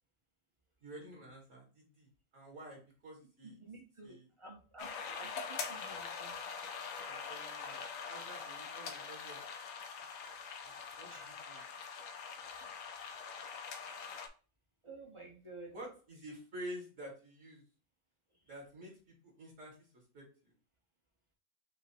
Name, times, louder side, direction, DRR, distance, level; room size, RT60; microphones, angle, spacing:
voice 1, 0.8-2.1 2.3-3.5 4.0-4.3 7.0-9.4 10.6-11.6 15.7-17.6 18.5-19.0 19.2-20.2, equal, 60° right, -2 dB, 2.2 m, -49 dB
voice 2, 3.4-6.4 11.1-11.7 12.6-12.8 14.8-15.8, right 3 dB, 25° right, 1 dB, 0.8 m, -52 dB
sound 1, 4.8-14.3, left 5 dB, 70° left, 1.0 m, -44 dB
5.3 x 2.2 x 4.2 m, 0.36 s
omnidirectional pair, 1.5 m